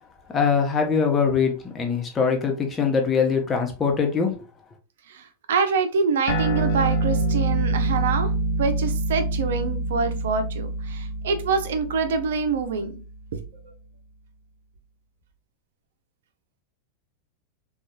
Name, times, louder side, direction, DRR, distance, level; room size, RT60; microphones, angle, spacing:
voice 1, 0.3-4.5, left 6 dB, 20° left, 2 dB, 0.8 m, -22 dB
voice 2, 5.1-8.3 8.6-12.9 13.3-13.4, right 5 dB, 75° right, 8 dB, 0.5 m, -25 dB
sound 1, 6.3-13.1, right 2 dB, 65° left, 0.8 m, -26 dB
2.9 x 2.3 x 2.3 m, 0.34 s
hypercardioid pair, 100°, 0 cm